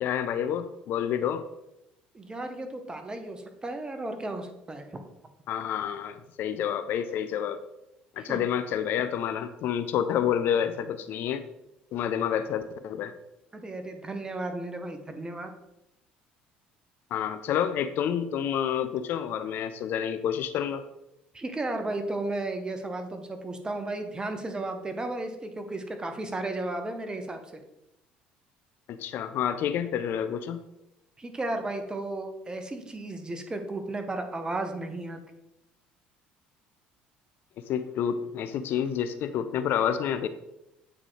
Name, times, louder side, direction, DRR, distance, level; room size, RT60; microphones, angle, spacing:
voice 1, 0.0-1.4 5.5-7.6 8.2-11.4 11.9-13.1 17.1-20.8 29.0-30.6 37.7-40.3, left 9 dB, 65° left, 11 dB, 0.4 m, -29 dB
voice 2, 2.1-4.9 8.2-8.4 13.5-15.5 21.3-27.6 31.2-35.2, right 2 dB, 20° right, 6 dB, 1.0 m, -34 dB
8.4 x 3.7 x 3.2 m, 0.87 s
hypercardioid pair, 70°, 4 cm